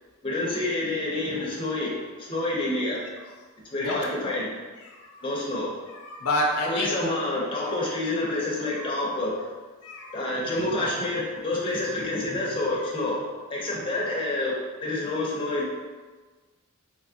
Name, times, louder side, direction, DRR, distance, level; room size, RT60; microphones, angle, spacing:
voice 1, 0.2-3.0 3.7-4.5 5.2-5.7 6.7-9.4 10.1-13.2 13.5-15.7, left 2 dB, 25° left, -4 dB, 0.6 m, -28 dB
voice 2, 3.8-4.3 4.8-5.3 5.9-7.1 7.6-7.8 8.7-9.0 9.8-10.8 15.0-15.1, left 1 dB, 80° left, -1 dB, 0.5 m, -31 dB
3.4 x 2.9 x 2.7 m, 1.4 s
head